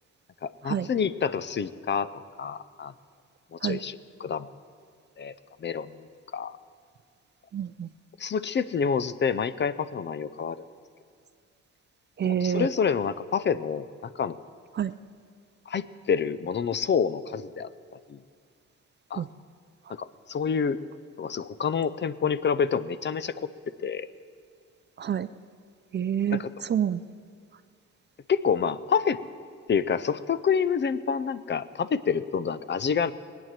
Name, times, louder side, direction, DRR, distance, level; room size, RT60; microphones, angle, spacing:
voice 1, 0.4-2.1 2.4-2.9 3.5-4.5 5.2-5.3 5.6-5.9 6.3-6.5 8.2-10.7 12.4-13.9 14.2-14.4 15.7-18.2 19.1-19.2 20.0-20.8 21.2-23.5 23.8-24.1 26.3-26.5 28.3-29.2 29.7-33.1, left 6 dB, 35° left, 15 dB, 0.6 m, -27 dB
voice 2, 7.5-7.9 12.2-12.7 14.7-14.9 19.2-19.3 19.9-20.0 25.0-25.3 25.9-27.0, right 9 dB, 35° right, 14 dB, 0.5 m, -28 dB
18.5 x 9.3 x 7.4 m, 2.1 s
cardioid pair, 90°, 30 cm